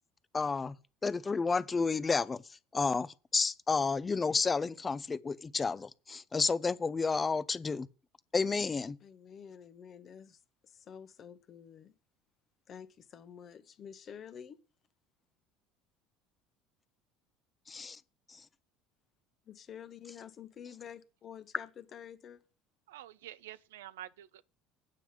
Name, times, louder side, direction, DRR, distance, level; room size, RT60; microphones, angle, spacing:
voice 1, 0.3-0.8 1.0-2.4 2.7-7.9 8.3-9.0 17.7-18.0, left 4 dB, 25° left, 0.6 m, -31 dB
voice 2, 9.0-11.9 12.7-14.6 19.5-22.4, left 8 dB, 45° left, 1.1 m, -49 dB
voice 3, 22.9-24.4, right 13 dB, 75° right, 0.5 m, -48 dB
9.0 x 5.7 x 7.3 m
hypercardioid pair, 65°, 0 cm